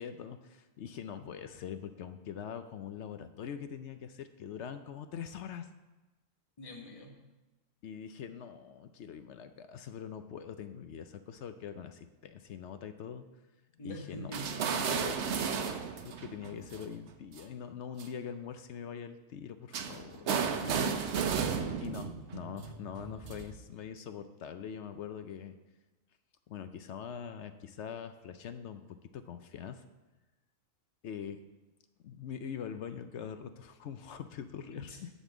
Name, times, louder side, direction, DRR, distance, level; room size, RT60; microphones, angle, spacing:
voice 1, 0.0-5.7 7.8-13.2 13.8-14.3 14.7-20.3 21.8-25.6 26.5-28.8 29.1-29.8 31.0-31.4 32.0-35.1, left 8 dB, 65° left, 9 dB, 0.8 m, -43 dB
voice 2, 6.6-7.1 13.8-14.6 20.6-21.1 34.7-35.0, left 1 dB, 25° left, 2 dB, 1.2 m, -43 dB
sound 1, 14.3-17.4 18.0-18.1 19.7-23.6, right 6 dB, 60° right, 1.0 m, -34 dB
11.0 x 4.3 x 7.2 m, 1.1 s
omnidirectional pair, 1.4 m